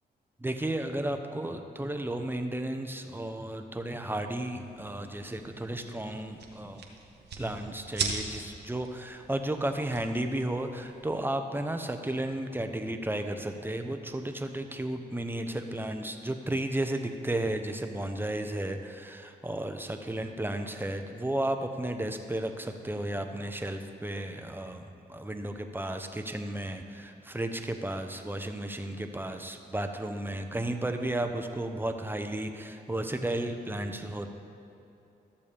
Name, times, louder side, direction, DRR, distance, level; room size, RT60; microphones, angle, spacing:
voice 1, 0.4-6.8 7.4-34.3, right 1 dB, 10° right, 6 dB, 0.8 m, -33 dB
sound 1, 4.4-11.1, right 5 dB, 75° right, 1.0 m, -41 dB
13.5 x 7.0 x 3.5 m, 2.8 s
cardioid pair, 65°, 18 cm